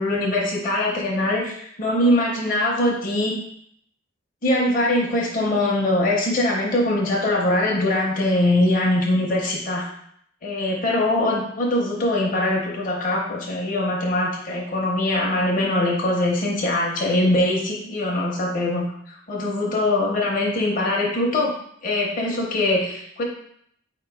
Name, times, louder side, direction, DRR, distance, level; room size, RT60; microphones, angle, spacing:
voice 1, 0.0-3.3 4.4-9.9 10.4-21.5 21.8-23.2, left 1 dB, 45° left, -2 dB, 0.7 m, -22 dB
4.4 x 2.9 x 3.4 m, 0.68 s
head